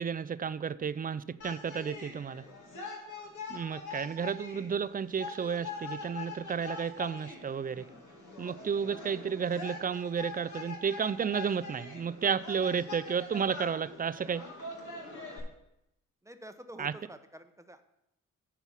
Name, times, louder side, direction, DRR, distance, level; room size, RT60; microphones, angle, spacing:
voice 1, 0.0-2.4 3.5-7.9 8.4-14.4 16.8-16.9, right 6 dB, 30° right, 16 dB, 0.4 m, -32 dB
sound 1, 1.4-15.4, left 3 dB, 65° left, 2.1 m, -44 dB
voice 2, 7.7-8.0 12.2-12.5 14.2-14.6 16.2-17.8, right 1 dB, 10° right, 8 dB, 0.8 m, -50 dB
9.7 x 4.6 x 5.6 m, 0.83 s
supercardioid pair, 55°, 32 cm